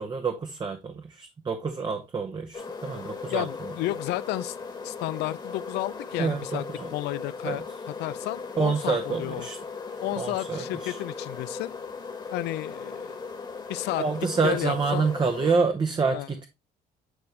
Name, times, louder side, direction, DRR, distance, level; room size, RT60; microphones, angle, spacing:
voice 1, 0.0-3.5 6.2-6.9 7.4-7.6 8.6-9.6 10.2-11.0 14.0-16.5, right 4 dB, 25° right, 0.8 m, -27 dB
sound 1, 2.5-15.6, left 4 dB, 25° left, 1.4 m, -38 dB
voice 2, 3.3-4.6 4.8-6.6 6.9-7.6 8.0-9.5 10.0-11.7 12.3-13.2 13.7-14.0 14.4-15.1 16.1-16.3, left 17 dB, 80° left, 0.4 m, -32 dB
9.2 x 3.4 x 3.2 m
cardioid pair, 110°, 17 cm